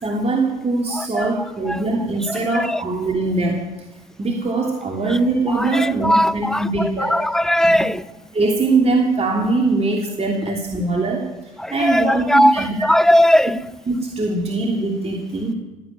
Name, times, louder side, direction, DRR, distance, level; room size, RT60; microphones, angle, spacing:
voice 1, 0.0-3.7 4.2-7.1 7.7-7.9 8.3-11.3 11.7-12.7 13.9-15.5, right 3 dB, 35° right, 0 dB, 3.1 m, -21 dB
voice 2, 0.9-1.3 2.4-2.8 5.6-8.0 11.6-13.6, equal, 5° left, 17 dB, 0.7 m, -18 dB
18.0 x 8.5 x 9.4 m, 1.1 s
hypercardioid pair, 55°, 18 cm